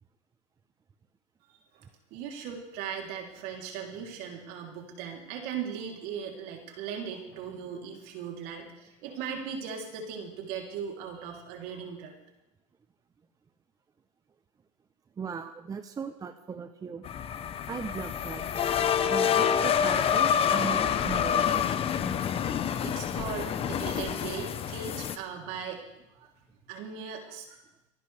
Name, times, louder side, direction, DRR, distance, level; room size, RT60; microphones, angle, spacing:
voice 1, 1.7-12.1 22.8-25.8 26.1-26.3 26.7-27.6, right 7 dB, 60° right, 1 dB, 3.3 m, -38 dB
voice 2, 15.2-17.0 17.7-18.5 19.1-21.6, right 6 dB, 20° right, 8 dB, 0.8 m, -38 dB
sound 1, 17.0-25.2, left 8 dB, 30° left, 0.9 m, -27 dB
26.0 x 11.0 x 3.4 m, 0.95 s
supercardioid pair, 115°, 18 cm